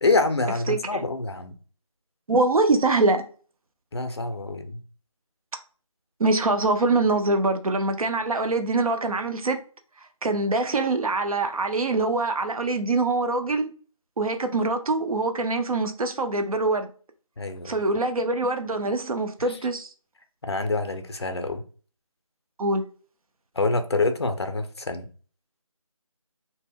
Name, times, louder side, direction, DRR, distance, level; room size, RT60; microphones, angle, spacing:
voice 1, 0.0-1.5 3.9-4.8 17.4-17.8 19.5-19.6 20.4-21.6 23.6-25.1, left 3 dB, 50° left, 0.4 m, -26 dB
voice 2, 0.7-1.1 2.3-3.3 6.2-9.6 10.2-13.7 14.2-16.9 17.7-19.9 22.6-22.9, right 2 dB, 90° right, 0.5 m, -24 dB
2.0 x 2.0 x 3.4 m
figure-of-eight pair, 175°, 18 cm